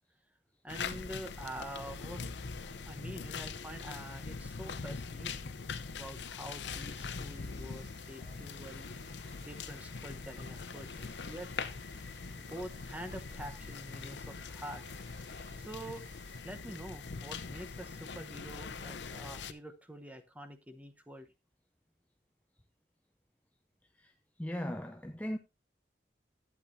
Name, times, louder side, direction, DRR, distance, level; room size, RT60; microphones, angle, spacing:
voice 1, 0.6-2.2 2.9-5.6 5.9-8.9 9.4-11.5 12.4-14.8 15.6-16.0 16.4-21.3, right 1 dB, 10° right, 1.0 m, -46 dB
sound 1, 0.7-19.5, left 5 dB, 90° left, 0.7 m, -42 dB
sound 2, 6.9-16.4, right 4 dB, 60° right, 1.2 m, -61 dB
voice 2, 23.9-25.4, equal, 10° left, 0.5 m, -39 dB
12.0 x 8.3 x 2.7 m
head